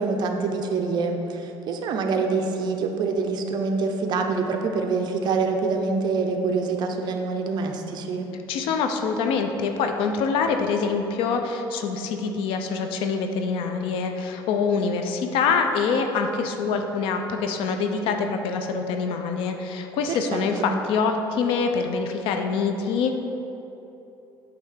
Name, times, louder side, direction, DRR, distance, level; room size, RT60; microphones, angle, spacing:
voice 1, 0.0-8.3 20.1-20.7, right 4 dB, 50° right, 3 dB, 0.8 m, -26 dB
voice 2, 8.5-23.1, left 5 dB, 75° left, 5 dB, 0.7 m, -25 dB
8.8 x 3.4 x 6.6 m, 3.0 s
cardioid pair, 130°, 9 cm